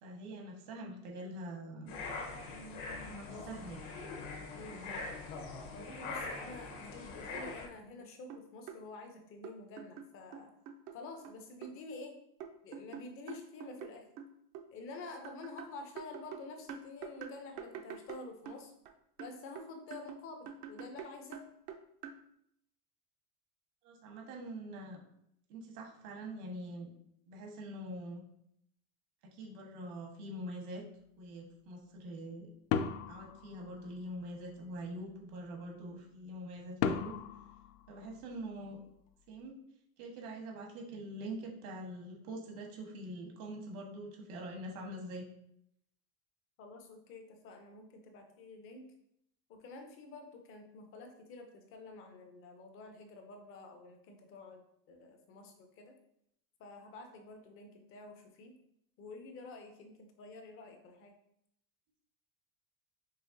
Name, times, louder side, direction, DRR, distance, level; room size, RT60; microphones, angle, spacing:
voice 1, 0.0-1.9 3.0-3.8 4.6-5.0 6.3-6.6 23.8-25.0 25.5-26.9 27.3-28.2 29.2-30.8 31.2-32.5 33.1-37.2 37.9-38.8 39.3-39.5 40.0-45.2, right 1 dB, 80° right, 1 dB, 1.5 m, -44 dB
sound 1, 1.9-7.7, left 3 dB, 60° left, 1.1 m, -43 dB
voice 2, 3.3-3.7 4.5-4.8 5.7-10.5 10.9-12.1 12.6-14.1 14.7-18.7 19.2-21.4 46.6-48.9 49.5-54.6 54.9-55.9 56.6-58.5 59.0-61.1, left 3 dB, 30° left, 4 dB, 0.6 m, -49 dB
sound 2, 8.0-8.1 8.3-8.8 9.4-11.0 11.2-11.7 12.4-14.7 15.2-18.9 19.2-22.2, right 7 dB, 45° right, 0.5 m, -46 dB
sound 3, 32.7-34.2 36.8-38.6, left 7 dB, 85° left, 0.5 m, -36 dB
5.6 x 3.2 x 2.6 m, 0.75 s
cardioid pair, 165°, 44 cm